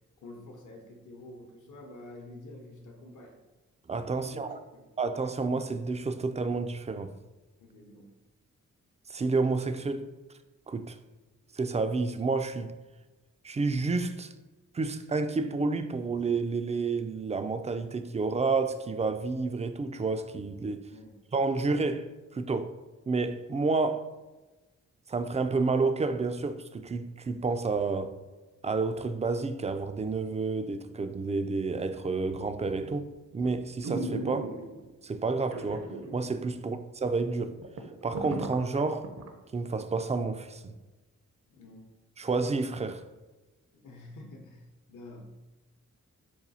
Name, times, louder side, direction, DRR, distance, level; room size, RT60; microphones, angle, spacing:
voice 1, 0.2-3.4 4.2-4.8 7.6-8.1 20.9-21.2 36.6-36.8 41.5-41.9 43.7-45.3, left 2 dB, 60° left, 0.8 m, -48 dB
voice 2, 3.9-4.6 5.0-7.1 9.1-10.1 10.7-11.0 11.5-12.7 13.4-14.3 14.7-20.9 21.3-22.8 23.1-24.1 25.1-28.1 28.6-34.5 35.0-37.6 38.0-39.1 39.5-40.8 42.2-43.0, right 4 dB, 20° right, 0.3 m, -30 dB
sound 1, 32.8-33.0 33.4-33.5 33.8-34.9 35.5-36.2 36.5-36.6 37.1-37.2 37.4-39.3 39.7-39.8, right 2 dB, 55° right, 0.7 m, -36 dB
4.2 x 2.3 x 4.0 m
supercardioid pair, 40°, 33 cm